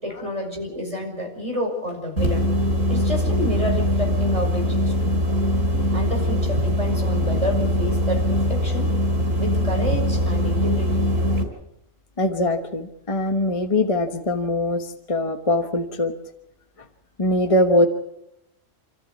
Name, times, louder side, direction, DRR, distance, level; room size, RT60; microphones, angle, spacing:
voice 1, 0.0-2.5 2.9-5.3 5.9-8.9 9.3-11.1, equal, 25° right, 2 dB, 5.7 m, -29 dB
sound 1, 2.2-11.4, equal, 80° right, 4.2 m, -22 dB
voice 2, 12.2-16.1 17.2-17.9, left 1 dB, 25° left, 6 dB, 1.3 m, -22 dB
28.0 x 13.5 x 8.3 m, 0.83 s
omnidirectional pair, 1.3 m